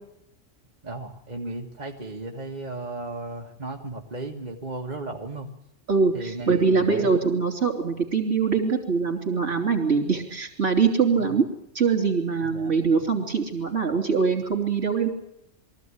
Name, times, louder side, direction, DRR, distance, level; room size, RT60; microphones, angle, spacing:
voice 1, 0.8-5.5 6.1-7.1 12.4-12.7, right 2 dB, 35° right, 0 dB, 1.6 m, -35 dB
voice 2, 5.9-11.5 11.8-15.1, right 5 dB, 55° right, 3 dB, 3.6 m, -23 dB
23.0 x 14.5 x 9.7 m, 0.81 s
omnidirectional pair, 1.3 m